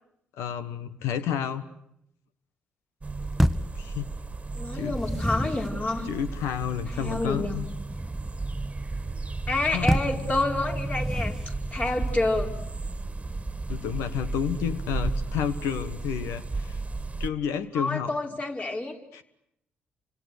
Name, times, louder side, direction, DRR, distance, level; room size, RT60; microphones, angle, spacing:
voice 1, 0.4-1.6 3.8-4.1 4.7-5.0 6.0-7.7 9.7-9.9 10.2-10.3 13.7-16.8 17.2-18.1 19.1-19.2, left 9 dB, 75° left, 11 dB, 1.4 m, -30 dB
sound 1, 3.0-17.3, right 3 dB, 25° right, 1.9 m, -33 dB
sound 2, 3.4-3.8 4.7-5.7 9.9-10.2 10.8-11.6, equal, ahead, 1.3 m, -27 dB
voice 2, 4.5-6.1 6.9-7.7 9.5-11.3 11.7-12.5 17.7-19.0, left 2 dB, 30° left, 2 dB, 4.8 m, -28 dB
29.5 x 26.0 x 6.7 m, 0.75 s
hypercardioid pair, 45°, 5 cm